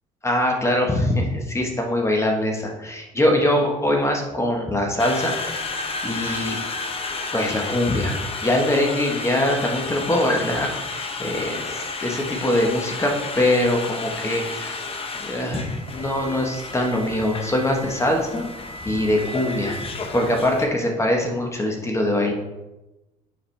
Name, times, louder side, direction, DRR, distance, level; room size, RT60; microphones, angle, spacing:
voice 1, 0.2-5.7 6.0-6.6 7.3-14.8 15.2-18.5 18.8-19.8 20.1-22.3, left 1 dB, 15° left, 1 dB, 1.2 m, -23 dB
Conversation, 5.0-20.7, left 3 dB, 35° left, 0.9 m, -32 dB
7.3 x 4.8 x 3.4 m, 1.0 s
cardioid pair, 110°, 17 cm